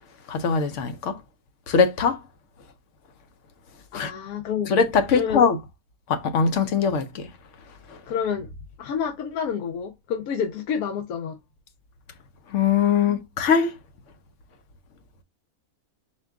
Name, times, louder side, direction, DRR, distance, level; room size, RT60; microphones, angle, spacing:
voice 1, 0.3-1.2 1.7-2.2 3.9-4.1 4.7-5.6 6.1-7.3 7.9-8.0 12.5-13.8, left 6 dB, 65° left, 0.9 m, -21 dB
voice 2, 3.9-4.7 5.1-5.4 8.0-8.5 8.8-11.4, left 7 dB, 90° left, 1.1 m, -28 dB
4.4 x 2.3 x 3.5 m
omnidirectional pair, 1.5 m